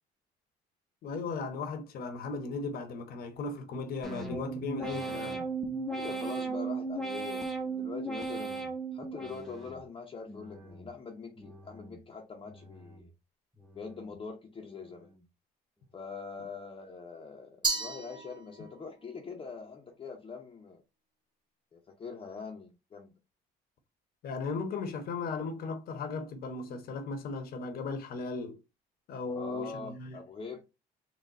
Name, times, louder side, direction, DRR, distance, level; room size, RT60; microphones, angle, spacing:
voice 1, 1.0-5.4 24.2-28.6 29.1-30.2, left 4 dB, 65° left, 1.1 m, -36 dB
sound 1, 4.0-9.9 10.3-10.9 11.4-12.0 12.5-13.1 13.6-14.2 14.7-15.2, right 3 dB, ahead, 0.8 m, -37 dB
voice 2, 5.9-13.1 13.7-15.1 15.9-20.8 21.7-23.1 29.2-30.6, left 5 dB, 30° left, 0.8 m, -43 dB
Glass, 17.6-18.9, right 3 dB, 25° right, 1.9 m, -33 dB
4.1 x 2.5 x 3.6 m
cardioid pair, 110°, 17 cm